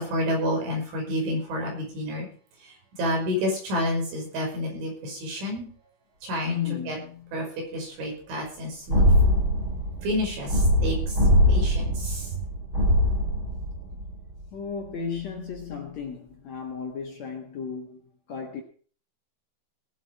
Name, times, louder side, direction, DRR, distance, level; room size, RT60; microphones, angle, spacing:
voice 1, 0.0-2.3 2.6-5.7 6.2-7.0 7.3-7.5 7.7-9.0 10.0-11.2 11.5-12.5, equal, 85° right, 7.8 m, -29 dB
voice 2, 6.5-7.2 14.5-18.0 18.3-18.6, left 7 dB, 60° left, 1.9 m, -34 dB
sound 1, 8.9-14.4, left 1 dB, 30° right, 4.7 m, -22 dB
19.0 x 8.1 x 5.4 m
omnidirectional pair, 5.3 m